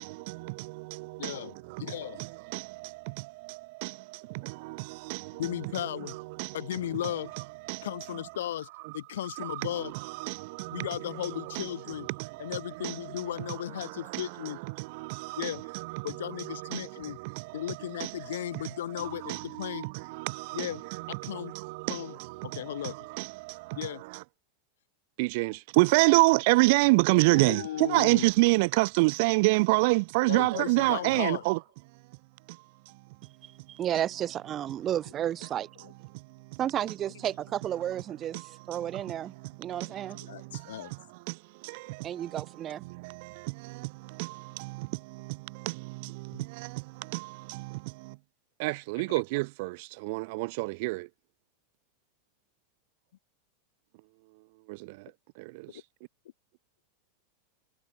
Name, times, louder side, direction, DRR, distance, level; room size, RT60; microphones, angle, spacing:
voice 1, 0.0-5.4 6.1-6.6 7.3-7.9 8.8-8.9 9.4-9.7 9.9-11.7 12.0-13.3 13.8-18.6 19.0-24.2 25.2-31.6 32.5-32.6 38.3-39.0 39.4-39.5 39.8-41.0 41.3-42.4 42.9-48.2 48.6-51.1 54.7-55.1 55.4-55.7, right 26 dB, 60° right, 2.4 m, -29 dB
voice 2, 1.2-2.2 5.4-6.2 6.5-7.3 7.8-9.9 10.7-12.1 12.4-14.6 15.4-15.6 16.0-17.2 17.5-19.9 20.5-21.5 21.9-22.2 22.4-23.0 23.8-24.0 27.3-28.3 30.3-31.4 35.8-35.9 39.9-40.9 46.3-46.5, left 12 dB, 80° left, 3.5 m, -36 dB
voice 3, 33.7-35.7 36.6-39.3 39.6-40.2 42.0-42.8, right 11 dB, 35° right, 1.9 m, -32 dB
hypercardioid pair, 110°, 0 cm